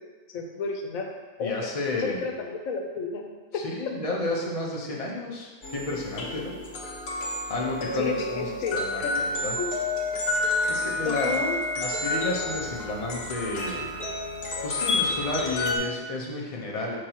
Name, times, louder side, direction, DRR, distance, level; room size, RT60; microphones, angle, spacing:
voice 1, 0.3-1.1 1.4-3.2 3.5-3.9 7.9-9.2 9.5-9.7 11.0-11.6 15.5-15.6, left 5 dB, 90° left, 2 dB, 1.1 m, -32 dB
voice 2, 1.4-2.3 3.5-6.6 7.5-9.5 10.7-11.4 11.8-13.9 14.6-17.0, left 2 dB, 30° left, -2 dB, 0.9 m, -31 dB
sound 1, 5.6-15.8, left 2 dB, 55° left, 1.0 m, -30 dB
6.4 x 5.2 x 3.0 m, 1.3 s
omnidirectional pair, 1.4 m